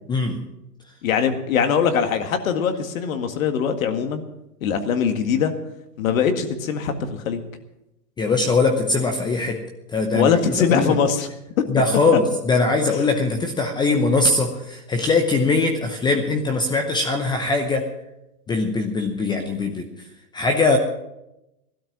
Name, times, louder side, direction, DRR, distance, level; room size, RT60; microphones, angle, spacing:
voice 1, 0.1-0.4 8.2-9.6 9.9-11.0 11.7-17.9 18.5-19.9 20.3-20.8, left 3 dB, 10° left, 4 dB, 0.8 m, -21 dB
voice 2, 1.0-4.2 4.6-5.5 6.0-7.4 10.1-11.3 12.1-12.2, left 7 dB, 55° left, 7 dB, 2.0 m, -21 dB
16.5 x 12.5 x 6.1 m, 0.90 s
hypercardioid pair, 130°, 47 cm